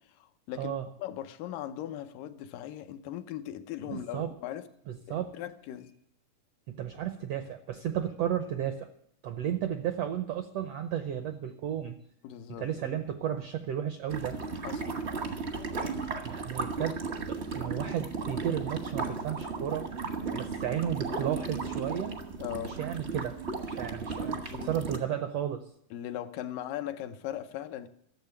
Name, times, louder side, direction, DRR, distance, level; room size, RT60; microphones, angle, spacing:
voice 1, 0.1-4.7 5.1-5.9 12.2-12.9 14.6-15.0 22.4-22.8 24.5-24.7 25.9-27.9, left 11 dB, 85° left, 2.4 m, -39 dB
voice 2, 3.9-4.3 4.9-5.3 6.7-8.9 9.2-11.9 12.5-14.4 16.2-17.0 17.3-22.2 22.7-23.4 23.7-25.7, right 10 dB, 80° right, 1.4 m, -33 dB
sound 1, 14.1-25.0, right 4 dB, 60° right, 0.7 m, -35 dB
12.5 x 7.4 x 9.5 m
omnidirectional pair, 3.8 m